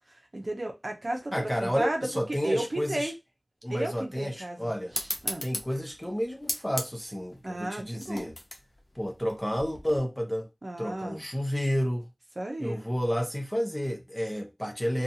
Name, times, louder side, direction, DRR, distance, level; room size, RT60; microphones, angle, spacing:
voice 1, 0.1-3.1 3.7-5.5 7.4-8.3 10.6-11.2 12.4-12.8, right 1 dB, 55° right, 0.7 m, -34 dB
voice 2, 1.3-3.1 3.6-4.9 5.4-8.3 8.9-10.5 10.8-12.1 12.6-15.0, equal, 10° left, 0.7 m, -30 dB
sound 1, 4.9-10.0, left 1 dB, 55° left, 0.6 m, -38 dB
2.5 x 2.3 x 2.8 m
wide cardioid pair, 50°, 0 cm